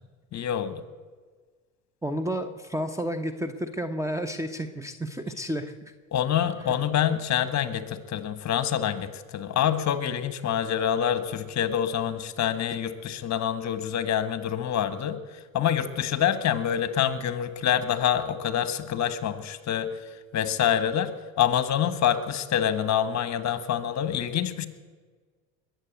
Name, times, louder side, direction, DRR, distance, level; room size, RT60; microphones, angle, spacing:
voice 1, 0.3-0.8 6.1-15.2 15.5-19.9 20.3-21.1 21.4-24.7, left 9 dB, 40° left, 12 dB, 1.5 m, -26 dB
voice 2, 2.0-5.7 6.6-6.8, equal, 5° right, 10 dB, 1.0 m, -31 dB
21.5 x 8.1 x 8.2 m, 1.5 s
supercardioid pair, 90°, 40 cm